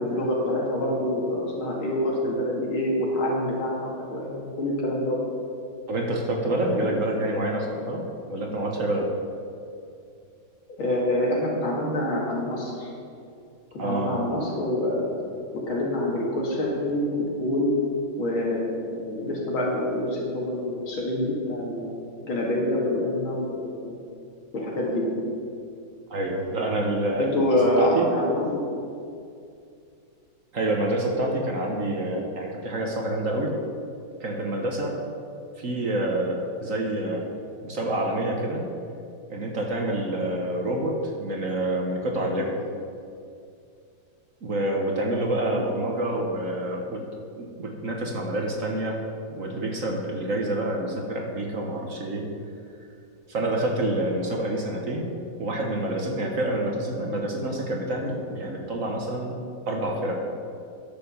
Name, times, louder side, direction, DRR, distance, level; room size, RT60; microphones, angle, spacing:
voice 1, 0.0-5.2 6.7-6.9 10.8-12.9 13.7-15.0 15.6-17.7 18.2-21.9 22.2-24.0 24.5-25.2 27.2-28.6 45.4-45.7, left 1 dB, 90° left, -3 dB, 3.0 m, -26 dB
voice 2, 5.9-9.1 13.8-14.2 26.1-28.1 30.5-33.6 34.2-35.0 35.6-37.3 37.6-38.7 39.3-42.6 44.4-47.1 47.4-49.0 49.3-52.3 53.3-55.1 55.4-59.4 59.7-60.1, right 1 dB, 45° right, 0 dB, 1.3 m, -27 dB
10.5 x 6.9 x 6.9 m, 2.4 s
omnidirectional pair, 2.2 m